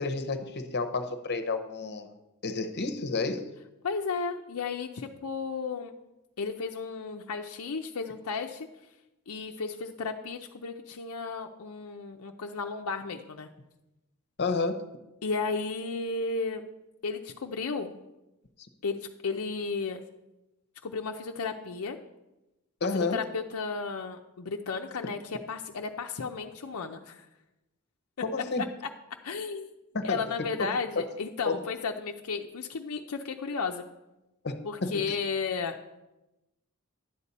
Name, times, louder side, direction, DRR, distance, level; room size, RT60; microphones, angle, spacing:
voice 1, 0.0-2.1 2.4-3.5 14.4-14.8 22.8-23.2 28.2-28.6 29.9-30.3 30.6-30.7 31.0-31.1 31.4-31.6 34.4-35.1, left 3 dB, 50° left, 9 dB, 0.9 m, -30 dB
voice 2, 3.8-5.9 6.4-8.7 9.3-13.5 15.2-16.6 17.0-18.0 18.8-20.0 20.8-22.0 22.9-27.3 29.2-29.7 30.0-33.8 34.6-36.0, left 4 dB, 75° left, 3 dB, 0.6 m, -34 dB
11.0 x 8.2 x 4.2 m, 0.97 s
head